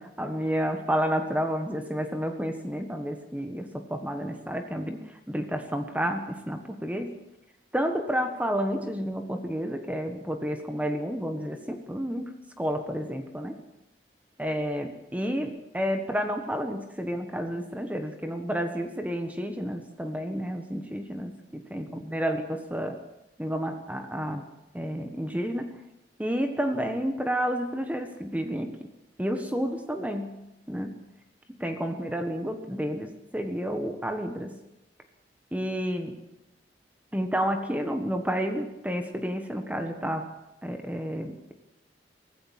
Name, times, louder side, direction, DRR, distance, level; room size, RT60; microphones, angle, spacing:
voice 1, 0.0-7.2 7.7-13.6 14.4-23.0 23.4-24.5 24.7-25.8 26.2-28.9 29.2-30.4 30.7-31.0 31.5-34.6 35.5-36.2 37.1-40.3 40.6-41.5, equal, 10° right, 6 dB, 1.4 m, -30 dB
24.0 x 15.0 x 7.5 m, 0.92 s
head